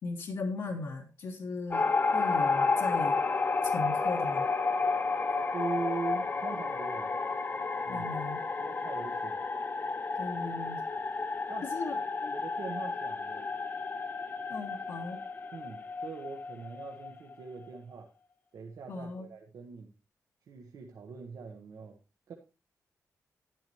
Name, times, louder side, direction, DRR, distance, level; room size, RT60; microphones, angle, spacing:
voice 1, 0.0-3.2 3.6-4.4 7.9-8.4 10.2-10.8 11.7-12.3 14.5-15.2 18.9-19.3, left 3 dB, 75° left, 1.5 m, -38 dB
sound 1, 1.7-17.6, left 4 dB, 35° left, 0.8 m, -31 dB
voice 2, 5.5-7.1 7.8-8.1 8.6-9.5 11.5-11.7 12.3-13.5 15.5-18.1 18.5-19.9 20.5-22.0 22.3-22.4, right 4 dB, 85° right, 1.2 m, -41 dB
11.5 x 10.5 x 3.1 m
wide cardioid pair, 140°, 6 cm